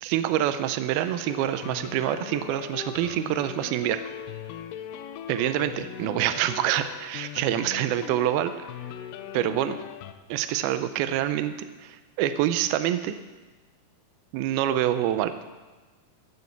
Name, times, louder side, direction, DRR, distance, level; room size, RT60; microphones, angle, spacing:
voice 1, 0.0-4.0 5.3-8.5 9.3-9.8 10.3-11.5 11.8-13.1 14.3-15.3, right 12 dB, 85° right, 10 dB, 2.5 m, -26 dB
sound 1, 1.2-10.1, left 10 dB, 85° left, 2.0 m, -39 dB
15.0 x 8.3 x 7.1 m, 1.2 s
omnidirectional pair, 4.6 m